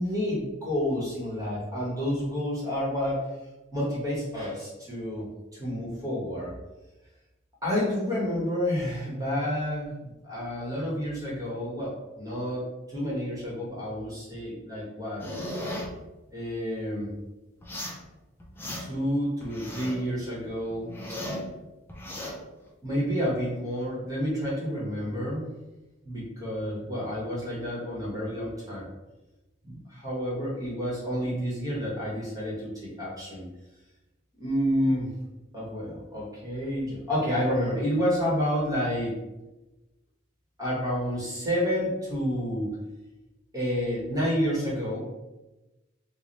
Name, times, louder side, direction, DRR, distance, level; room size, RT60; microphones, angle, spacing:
voice 1, 0.0-3.3 3.7-5.3 5.5-6.5 7.6-15.3 16.3-17.1 18.8-21.2 22.8-25.5 26.0-28.9 29.6-33.5 34.4-35.1 35.5-39.2 40.6-42.8 43.5-45.0, equal, 15° right, -6 dB, 1.2 m, -29 dB
sound 1, 15.2-15.9 17.6-18.0 18.4-19.1 19.4-20.1 20.5-21.5 21.9-22.3, left 1 dB, 10° left, 0.6 m, -36 dB
3.2 x 2.3 x 3.9 m, 1.0 s
head